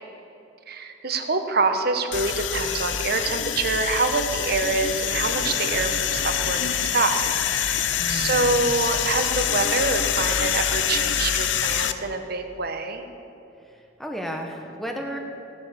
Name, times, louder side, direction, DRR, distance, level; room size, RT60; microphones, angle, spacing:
voice 1, 0.7-7.3 7.7-7.8 8.1-13.0, right 3 dB, 55° right, 6 dB, 1.0 m, -26 dB
sound 1, 2.1-11.9, left 9 dB, 70° left, 0.6 m, -25 dB
sound 2, 4.8-11.3, left 3 dB, 55° left, 0.9 m, -40 dB
voice 2, 8.0-8.7 13.7-15.2, equal, ahead, 2 dB, 1.2 m, -34 dB
17.0 x 7.1 x 6.9 m, 2.8 s
head